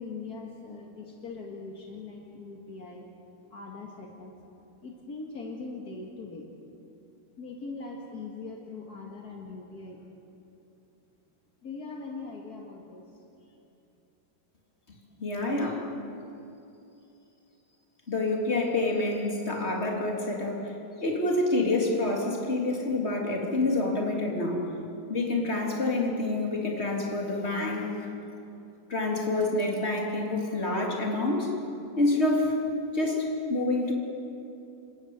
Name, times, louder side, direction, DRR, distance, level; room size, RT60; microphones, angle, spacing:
voice 1, 0.0-3.1 3.5-4.3 4.8-6.5 7.4-10.0 11.6-13.6, left 3 dB, 70° left, 0 dB, 2.5 m, -41 dB
voice 2, 15.2-15.9 18.1-24.7 25.1-28.1 28.9-31.5 32.0-32.6 32.9-33.9, left 2 dB, 40° left, -1 dB, 3.5 m, -27 dB
28.0 x 14.5 x 9.4 m, 2.8 s
omnidirectional pair, 1.7 m